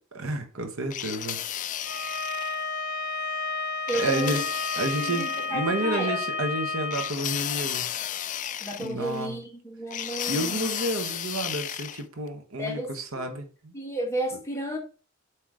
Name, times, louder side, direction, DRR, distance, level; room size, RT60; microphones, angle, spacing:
voice 1, 0.1-1.4 4.0-4.4 4.8-7.9 8.8-9.4 10.3-13.7, right 1 dB, 75° right, 1.2 m, -30 dB
sound 1, 0.9-2.6 3.9-5.5 6.9-9.3 9.9-12.0, left 11 dB, 35° left, 0.3 m, -33 dB
Bowed string instrument, 1.8-7.1, left 3 dB, 55° left, 2.7 m, -31 dB
voice 2, 3.9-4.5 5.0-6.2 8.6-10.7 12.6-13.3 13.7-14.8, right 1 dB, 15° left, 1.8 m, -32 dB
7.7 x 3.1 x 4.8 m
head